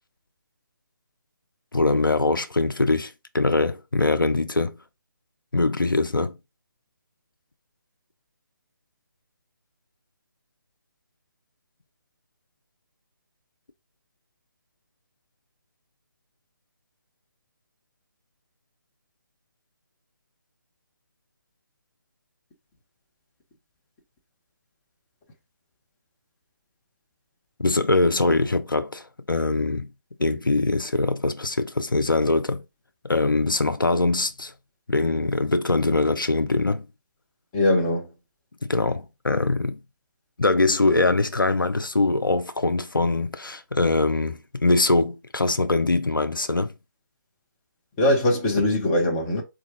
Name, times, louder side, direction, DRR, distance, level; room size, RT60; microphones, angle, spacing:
voice 1, 1.7-4.8 5.5-6.4 27.6-29.9 30.2-32.6 33.0-34.5 34.9-36.9 38.6-39.8 40.4-46.7, left 2 dB, 85° left, 0.5 m, -23 dB
voice 2, 37.5-38.1 48.0-49.4, left 1 dB, 20° left, 0.9 m, -21 dB
4.4 x 2.3 x 3.0 m
figure-of-eight pair, 145°, 11 cm